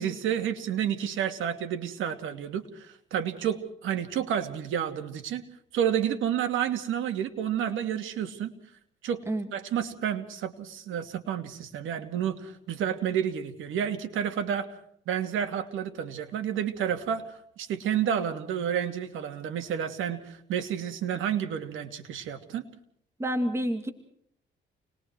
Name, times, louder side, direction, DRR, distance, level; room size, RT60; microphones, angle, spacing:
voice 1, 0.0-5.4 5.7-8.5 9.0-9.2 9.5-14.7 15.1-22.6, right 9 dB, 80° right, 7 dB, 2.5 m, -30 dB
voice 2, 23.2-23.9, equal, 15° right, 7 dB, 2.4 m, -28 dB
29.0 x 21.0 x 4.7 m, 0.67 s
cardioid pair, 90°, 20 cm